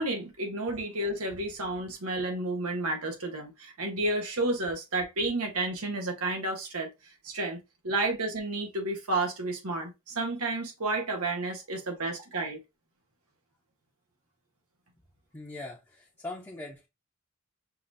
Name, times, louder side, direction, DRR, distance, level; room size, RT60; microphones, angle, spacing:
voice 1, 0.0-6.9 7.2-7.6 7.8-12.6, right 2 dB, 85° right, 1.5 m, -31 dB
voice 2, 15.3-16.9, left 2 dB, 10° left, 0.8 m, -41 dB
5.6 x 2.8 x 2.6 m
head